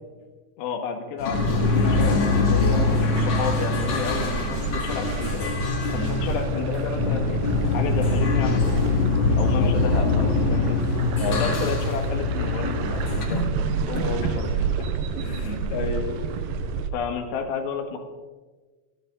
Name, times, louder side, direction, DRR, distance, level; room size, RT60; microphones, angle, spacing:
voice 1, 0.6-5.5 5.9-7.4 7.7-8.8 9.4-10.8 11.3-14.5 16.9-18.0, left 6 dB, 85° left, 5 dB, 3.7 m, -31 dB
sound 1, 1.2-13.2, left 4 dB, 40° left, 1.9 m, -24 dB
sound 2, 1.3-16.9, right 6 dB, 80° right, 3.0 m, -30 dB
sound 3, 4.8-14.6, left 1 dB, 20° left, 3.9 m, -37 dB
voice 2, 5.9-6.3 9.6-9.9 11.2-11.4 13.3-13.5 13.9-16.2, left 4 dB, 70° left, 3 dB, 3.7 m, -32 dB
25.0 x 12.5 x 3.8 m, 1.3 s
omnidirectional pair, 4.8 m